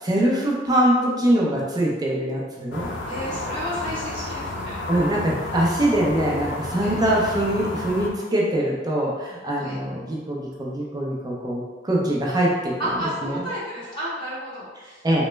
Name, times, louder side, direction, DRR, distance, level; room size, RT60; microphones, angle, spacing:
voice 1, 0.0-2.9 4.9-12.7 13.2-13.4 15.0-15.2, right 1 dB, 20° right, -4 dB, 0.5 m, -23 dB
sound 1, 2.7-8.1, left 2 dB, 80° left, 0.4 m, -31 dB
voice 2, 3.1-4.9 6.8-7.0 9.5-9.8 12.8-15.1, equal, 30° left, -10 dB, 1.2 m, -32 dB
3.0 x 2.0 x 3.2 m, 1.3 s
head